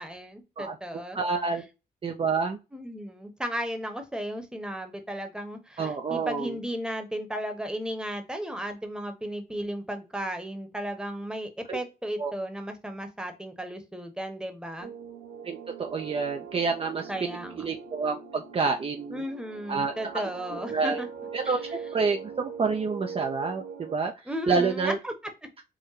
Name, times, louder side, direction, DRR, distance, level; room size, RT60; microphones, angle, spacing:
voice 1, 0.0-1.2 2.7-14.9 17.1-17.7 19.1-21.1 21.4-21.6 24.3-25.1, equal, 5° right, 6 dB, 1.0 m, -35 dB
voice 2, 0.6-1.6 2.0-2.6 5.8-6.5 11.7-11.8 12.2-12.3 15.4-17.3 17.6-19.2 19.7-20.2 20.5-21.0 21.3-25.0, right 4 dB, 35° right, 4 dB, 0.5 m, -28 dB
sound 1, 14.8-24.0, right 6 dB, 80° right, 0.8 m, -41 dB
4.7 x 2.1 x 4.5 m, 0.28 s
cardioid pair, 85°, 16 cm